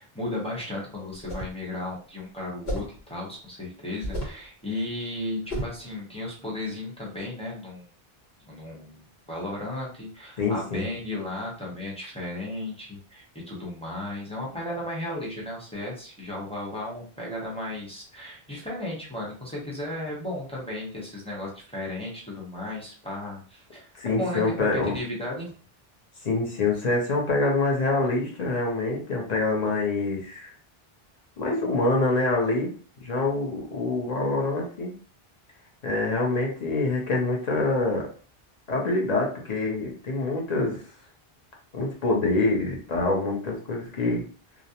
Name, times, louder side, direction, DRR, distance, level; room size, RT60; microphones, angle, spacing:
voice 1, 0.0-7.9 8.5-24.7 24.9-25.5, left 1 dB, 5° left, -5 dB, 0.6 m, -35 dB
sound 1, 1.1-1.6 2.7-3.0 4.0-4.4 5.5-5.8, equal, 80° left, 1.3 m, -32 dB
voice 2, 10.4-10.9 24.0-24.9 26.2-30.5 31.4-32.7 33.0-34.9 35.8-38.1 38.7-40.8 41.7-44.2, left 2 dB, 50° left, -1 dB, 0.7 m, -25 dB
2.4 x 2.0 x 2.7 m, 0.41 s
omnidirectional pair, 1.0 m